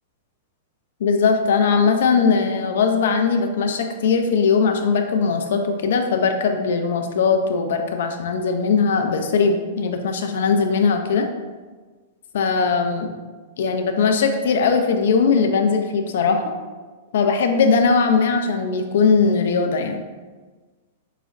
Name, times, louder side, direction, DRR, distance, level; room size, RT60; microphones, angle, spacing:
voice 1, 1.0-11.3 12.3-13.1 13.6-16.5 17.1-20.0, left 5 dB, 70° left, 6 dB, 0.3 m, -19 dB
4.7 x 2.0 x 2.5 m, 1.3 s
hypercardioid pair, 115°, 0 cm